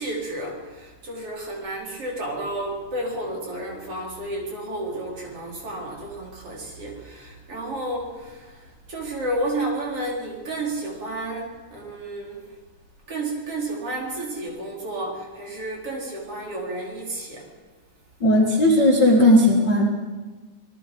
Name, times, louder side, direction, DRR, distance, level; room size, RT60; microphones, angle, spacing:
voice 1, 0.0-12.5 13.1-17.5, right 1 dB, 40° right, -1 dB, 4.7 m, -31 dB
voice 2, 18.2-19.9, left 1 dB, 40° left, 0 dB, 1.8 m, -16 dB
26.5 x 19.0 x 5.4 m, 1.3 s
omnidirectional pair, 4.1 m